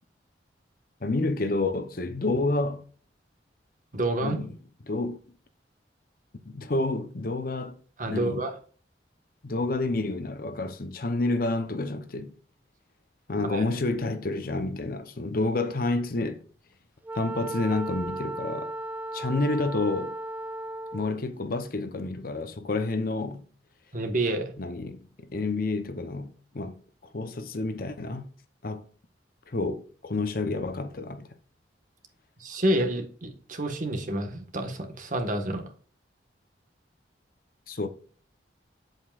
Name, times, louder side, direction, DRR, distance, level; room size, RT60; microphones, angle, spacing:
voice 1, 1.0-2.9 4.2-4.6 4.8-5.2 6.4-7.7 8.1-8.4 9.4-12.3 13.3-16.4 17.1-18.7 19.1-20.2 20.9-23.5 24.6-26.8 27.1-28.3 28.6-28.8 29.5-31.3 37.7-37.9, left 2 dB, 50° left, 0.8 m, -29 dB
voice 2, 3.9-4.4 8.0-8.5 13.5-13.6 23.9-24.5 32.4-35.6, right 1 dB, 45° right, 1.5 m, -28 dB
Wind instrument woodwind instrument, 17.0-21.2, right 2 dB, 10° right, 0.4 m, -35 dB
8.3 x 7.9 x 2.5 m
head